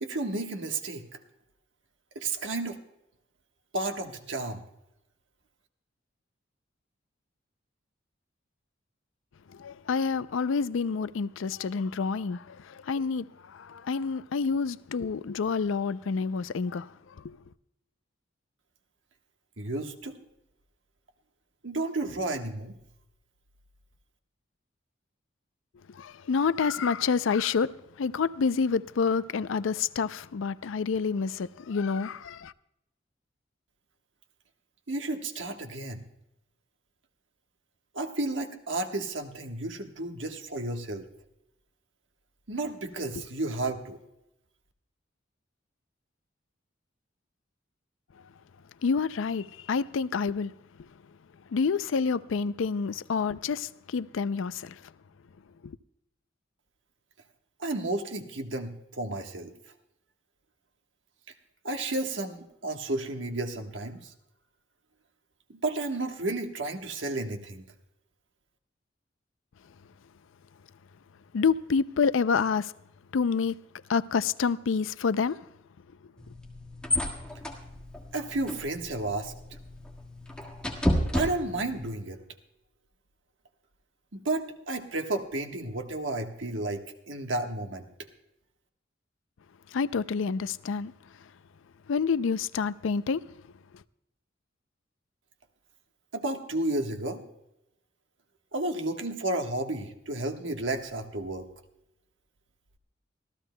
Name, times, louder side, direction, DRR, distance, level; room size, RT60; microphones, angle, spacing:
voice 1, 0.0-1.0 2.1-2.8 3.7-4.6 19.6-20.1 21.6-22.8 34.9-36.0 37.9-41.1 42.5-44.0 57.6-59.5 61.6-64.1 65.6-67.6 78.1-79.3 81.1-82.2 84.1-87.9 96.1-97.2 98.5-101.5, right 2 dB, 70° right, 1.3 m, -32 dB
voice 2, 9.6-12.6 12.9-13.3 13.5-16.9 17.2-17.4 26.0-27.7 28.0-32.5 48.8-50.5 51.5-54.7 55.6-55.7 71.3-72.7 73.1-73.5 73.9-75.4 89.7-90.9 91.9-93.2, left 5 dB, 80° left, 0.4 m, -28 dB
sound 1, 76.2-81.9, left 1 dB, 5° left, 1.6 m, -32 dB
25.5 x 14.5 x 2.2 m
head